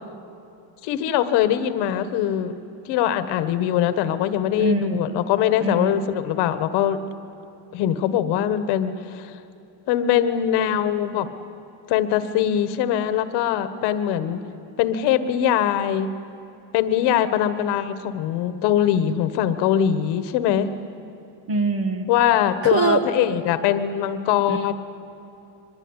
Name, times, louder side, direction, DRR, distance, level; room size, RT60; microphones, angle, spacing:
voice 1, 0.8-2.5 2.8-7.0 7.7-9.4 9.9-11.3 11.9-14.4 14.8-16.1 16.7-20.7 22.1-24.7, left 10 dB, 55° left, 11 dB, 1.5 m, -22 dB
voice 2, 4.6-5.1 5.6-5.9 21.5-22.1 22.6-23.0 24.5-24.7, right 4 dB, 30° right, 8 dB, 1.8 m, -23 dB
24.0 x 22.0 x 9.8 m, 2.8 s
cardioid pair, 160°, 47 cm